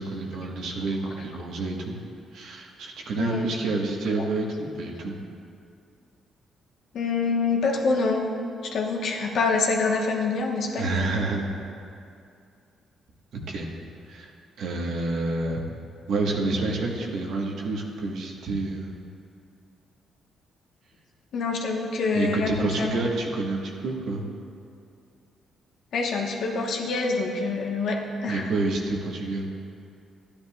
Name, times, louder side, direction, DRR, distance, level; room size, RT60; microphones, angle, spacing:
voice 1, 0.0-2.0 2.3-5.2 10.8-11.5 13.3-13.7 14.1-14.3 14.6-15.6 16.1-19.0 22.1-24.3 28.3-29.4, right 3 dB, 75° right, 0 dB, 1.3 m, -28 dB
voice 2, 6.9-8.3 8.6-11.1 21.3-23.0 25.9-28.5, left 4 dB, 70° left, 0 dB, 1.2 m, -26 dB
13.0 x 10.0 x 2.3 m, 2.4 s
cardioid pair, 90°, 0 cm